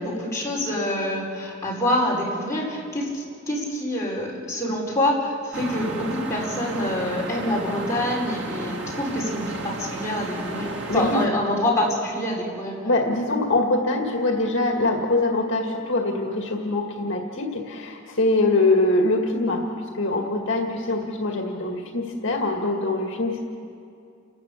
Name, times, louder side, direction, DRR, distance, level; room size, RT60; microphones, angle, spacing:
voice 1, 0.0-12.8, left 1 dB, 15° left, -5 dB, 4.8 m, -26 dB
sound 1, 5.5-11.3, right 1 dB, 60° right, 2.4 m, -33 dB
voice 2, 10.9-11.2 12.8-23.4, left 2 dB, 60° left, 2 dB, 2.0 m, -23 dB
29.5 x 13.5 x 8.5 m, 2.4 s
head